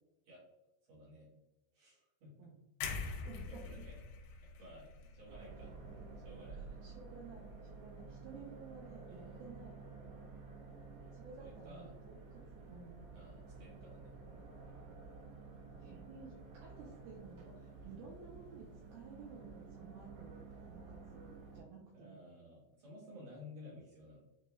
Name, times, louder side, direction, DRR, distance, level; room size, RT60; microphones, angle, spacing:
voice 1, 0.9-1.3 1.7-2.3 2.9-3.2 3.5-4.0 4.4-5.7 6.2-6.7 9.1-9.3 11.4-11.9 13.1-14.2 21.9-24.2, left 1 dB, 55° right, -6 dB, 2.0 m, -55 dB
sound 1, 2.8-6.8 7.2-7.4, left 5 dB, 85° left, 2.8 m, -45 dB
voice 2, 3.2-3.9 6.8-9.8 11.1-13.2 15.8-22.2, right 5 dB, 85° right, -2 dB, 2.2 m, -54 dB
sound 2, 5.3-21.6, right 4 dB, 70° right, 2.9 m, -52 dB
6.4 x 2.3 x 3.0 m, 0.93 s
omnidirectional pair, 5.0 m